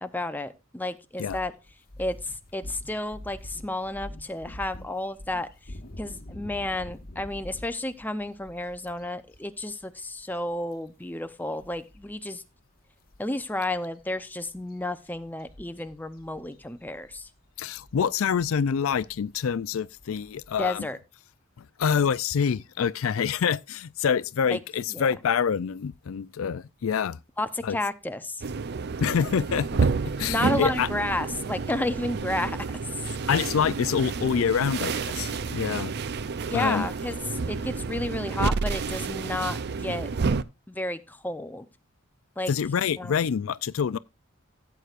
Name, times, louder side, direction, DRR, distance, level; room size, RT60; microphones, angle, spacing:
voice 1, 0.0-1.5 2.0-5.5 6.0-12.4 13.2-17.3 20.6-21.0 24.5-24.6 24.9-25.1 27.4-28.4 30.3-32.6 32.9-33.0 36.5-37.2 37.5-40.1 40.7-41.6 42.4-42.5 43.0-43.2, left 1 dB, 10° left, 0.6 m, -31 dB
sound 1, 1.2-12.3 12.6-12.8 13.1-20.8, left 1 dB, 45° left, 1.3 m, -46 dB
voice 2, 17.6-20.9 21.6-27.2 27.6-27.8 29.0-29.9 30.2-30.9 33.3-35.9 36.5-36.9 42.5-44.0, left 7 dB, 90° left, 0.4 m, -26 dB
sound 2, 28.4-40.4, right 4 dB, 55° right, 0.5 m, -30 dB
16.0 x 8.1 x 2.5 m
head